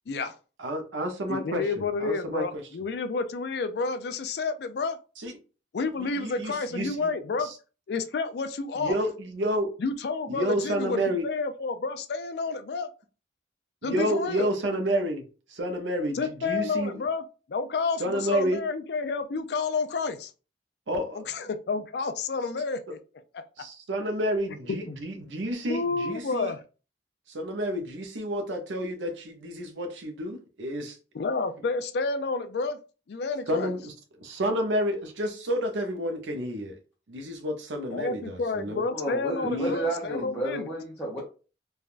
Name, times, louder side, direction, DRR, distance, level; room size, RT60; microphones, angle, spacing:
voice 1, 0.6-1.6 2.0-2.4 5.2-5.3 6.0-7.1 7.4-7.5 8.8-9.7 10.3-11.2 13.8-15.2 15.5-16.9 18.0-18.6 20.9-21.2 23.6-26.5 27.3-31.0 33.5-36.7 37.1-38.8 39.4-39.8, equal, 80° right, 0.6 m, -30 dB
voice 2, 1.3-5.0 5.7-7.5 7.9-9.0 9.8-11.0 11.2-12.9 13.8-14.5 16.1-20.3 21.1-23.0 23.3-23.4 24.7-25.0 25.7-26.6 31.1-32.8 33.1-33.7 37.9-40.7, left 4 dB, 60° left, 0.3 m, -30 dB
voice 3, 38.9-41.2, right 1 dB, 10° left, 0.6 m, -31 dB
3.3 x 2.2 x 2.4 m
head